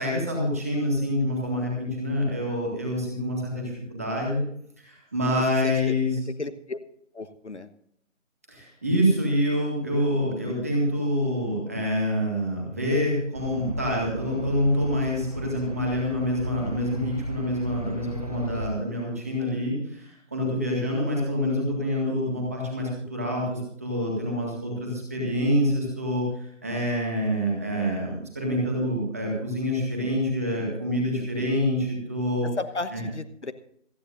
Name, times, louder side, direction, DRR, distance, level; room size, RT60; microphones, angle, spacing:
voice 1, 0.0-4.5 4.8-6.2 8.5-32.5 32.9-33.0, equal, 10° right, -1 dB, 1.8 m, -26 dB
voice 2, 5.6-5.9 6.4-6.8 7.1-7.7 30.9-31.5 32.4-33.5, left 3 dB, 65° left, 10 dB, 1.2 m, -35 dB
sound 1, 13.3-18.7, left 1 dB, 30° right, 0.7 m, -36 dB
27.5 x 9.8 x 2.6 m, 0.66 s
figure-of-eight pair, 175°, 38 cm